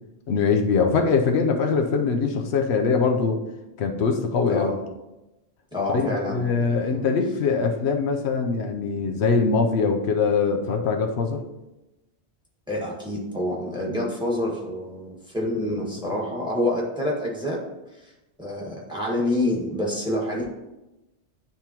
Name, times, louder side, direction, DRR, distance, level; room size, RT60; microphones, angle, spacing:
voice 1, 0.3-3.4 3.8-4.7 5.9-11.4 15.4-15.5, left 5 dB, 90° left, 4 dB, 1.0 m, -22 dB
voice 2, 5.7-7.0 12.7-17.6 18.4-20.4, left 1 dB, 5° right, -3 dB, 1.6 m, -27 dB
10.0 x 3.5 x 2.9 m, 0.99 s
omnidirectional pair, 1.1 m